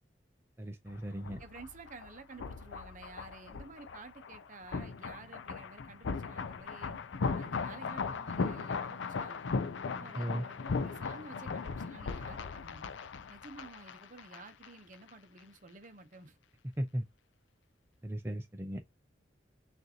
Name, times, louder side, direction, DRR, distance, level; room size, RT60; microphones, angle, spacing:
voice 1, 0.6-1.4 10.1-10.5 16.8-17.0 18.0-18.8, equal, 15° right, 0.5 m, -36 dB
sound 1, 0.9-14.7 14.9-15.1, left 4 dB, 80° left, 0.5 m, -38 dB
voice 2, 1.4-7.0 7.3-9.6 10.0-12.9 13.3-16.4, right 3 dB, 45° right, 0.8 m, -52 dB
6.5 x 2.6 x 2.8 m
head